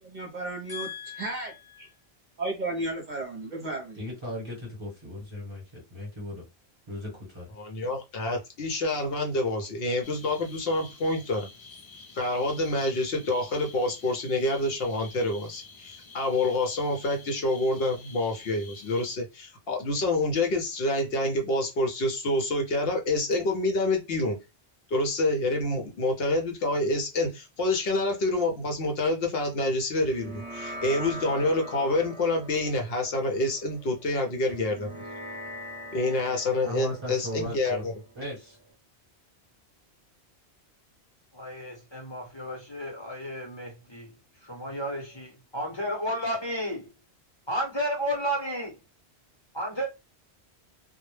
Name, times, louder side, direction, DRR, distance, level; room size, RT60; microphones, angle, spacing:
voice 1, 0.0-0.9 1.2-1.5 1.8-1.9 2.4-4.0, right 2 dB, 50° right, 0.7 m, -33 dB
voice 2, 0.7-1.9 3.9-6.4 6.9-7.5 36.6-37.8 38.1-38.6, left 1 dB, 25° right, 1.1 m, -38 dB
voice 3, 7.6-11.5 12.1-24.4 24.9-34.9 35.9-37.9, left 2 dB, 65° left, 0.8 m, -27 dB
sound 1, 10.0-19.2, left 4 dB, 50° left, 0.3 m, -49 dB
sound 2, 30.0-38.7, equal, 5° right, 0.6 m, -42 dB
voice 4, 41.3-44.1 44.4-46.9 47.5-48.7 49.5-49.9, equal, 30° left, 0.8 m, -32 dB
2.1 x 2.0 x 3.1 m
omnidirectional pair, 1.1 m